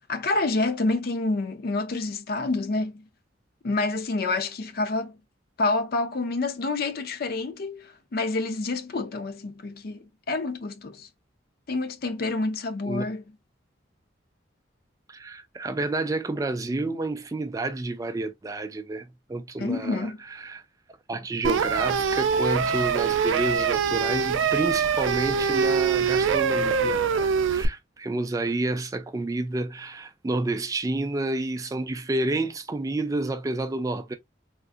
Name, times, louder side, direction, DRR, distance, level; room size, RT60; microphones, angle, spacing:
voice 1, 0.1-3.0 3.6-5.1 5.6-11.1 11.7-13.2 19.6-20.2, left 3 dB, 50° left, 0.5 m, -28 dB
voice 2, 15.1-20.6 21.1-34.1, right 2 dB, 20° right, 0.3 m, -30 dB
sound 1, 21.4-27.7, right 6 dB, 90° right, 0.4 m, -24 dB
3.6 x 2.4 x 2.4 m
head